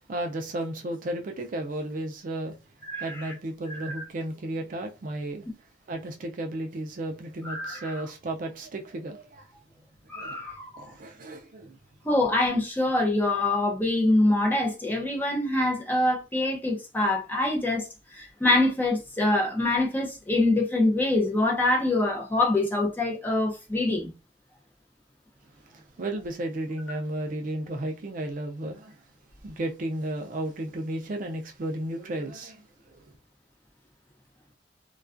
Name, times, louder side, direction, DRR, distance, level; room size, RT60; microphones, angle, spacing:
voice 1, 0.1-2.6 3.0-5.5 5.9-9.5 10.2-10.4 10.8-11.8 25.7-29.0 29.4-32.6 32.9-33.1, right 1 dB, 45° right, 0.4 m, -33 dB
voice 2, 2.9-3.3 3.7-3.9 7.4-8.0 10.1-10.8 12.0-17.9 18.1-24.1, left 2 dB, 10° left, 0.5 m, -25 dB
2.3 x 2.2 x 2.4 m
head